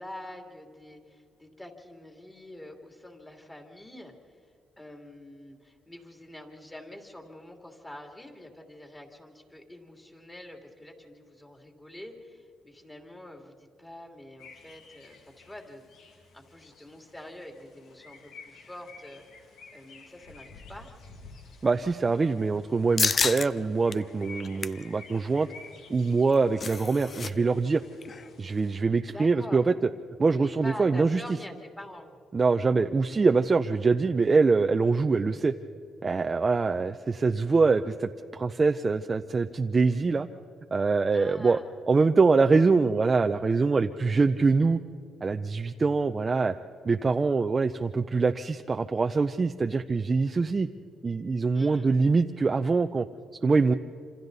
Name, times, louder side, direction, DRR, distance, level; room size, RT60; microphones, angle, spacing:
voice 1, 0.0-4.1 4.8-19.2 19.7-20.9 29.0-29.6 30.4-32.1 41.1-41.6 51.5-51.9, left 1 dB, 15° left, 2 dB, 2.9 m, -46 dB
sound 1, 14.4-28.8, left 4 dB, 75° left, 2.3 m, -52 dB
voice 2, 21.6-25.5 25.9-27.8 28.4-29.7 30.2-31.2 32.3-35.5 36.0-40.3 40.7-41.6 41.9-44.8 45.2-46.5 46.8-50.7 51.0-53.1 53.4-53.7, right 4 dB, 30° right, 6 dB, 0.6 m, -24 dB
sound 2, 23.0-23.5 23.9-24.0 24.4-24.8 26.1-27.3 27.6-27.7 28.0-28.3, left 5 dB, 40° left, 0.6 m, -29 dB
27.0 x 26.5 x 4.1 m, 2.5 s
cardioid pair, 90°, 0 cm